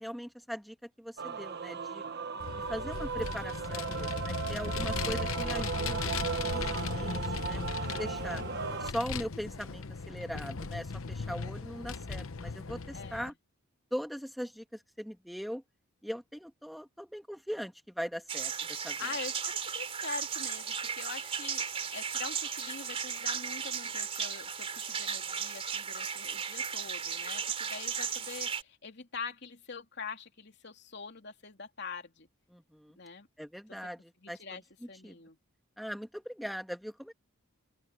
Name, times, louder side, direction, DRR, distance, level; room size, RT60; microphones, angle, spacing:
voice 1, 0.0-2.0 2.6-7.6 7.9-8.4 8.8-13.3 13.9-15.6 16.0-19.0 32.5-33.0 33.4-34.4 34.8-35.2 35.8-37.1, equal, ahead, 1.4 m, -40 dB
Male singing / Female singing / Musical instrument, 1.2-8.9, right 6 dB, 50° right, 1.2 m, -36 dB
Vehicle, 2.4-13.3, left 4 dB, 80° left, 1.0 m, -37 dB
voice 2, 12.9-13.3 19.0-32.3 33.0-33.3 34.2-34.6 34.9-35.4, left 5 dB, 55° left, 3.4 m, -44 dB
sound 1, 18.3-28.6, right 6 dB, 30° right, 3.6 m, -35 dB
open air
head